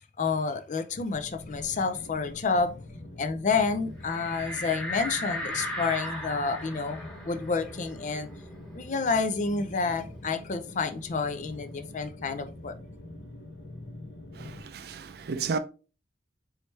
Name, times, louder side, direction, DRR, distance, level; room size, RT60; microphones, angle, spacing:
voice 1, 0.2-2.7 3.2-8.3 8.7-12.7, left 4 dB, 45° left, 0.5 m, -29 dB
sound 1, 1.1-14.6, left 1 dB, 65° left, 1.0 m, -45 dB
sound 2, 4.0-9.2 9.6-9.7 10.0-11.7, equal, 5° left, 1.2 m, -37 dB
voice 2, 14.3-15.6, right 5 dB, 65° right, 0.4 m, -33 dB
4.6 x 3.2 x 3.1 m
head